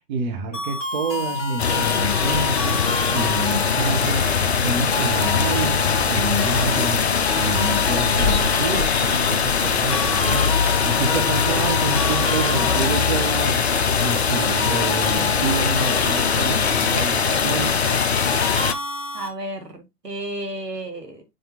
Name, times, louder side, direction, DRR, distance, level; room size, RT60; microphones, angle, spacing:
voice 1, 0.1-5.8 6.1-17.8, right 4 dB, 30° right, 1.4 m, -28 dB
sound 1, 0.5-19.3, left 2 dB, 10° left, 0.7 m, -30 dB
sound 2, 1.6-18.7, left 6 dB, 45° left, 0.5 m, -21 dB
voice 2, 19.1-21.2, right 1 dB, 75° right, 2.5 m, -32 dB
7.6 x 4.9 x 2.9 m
figure-of-eight pair, 130°, 48 cm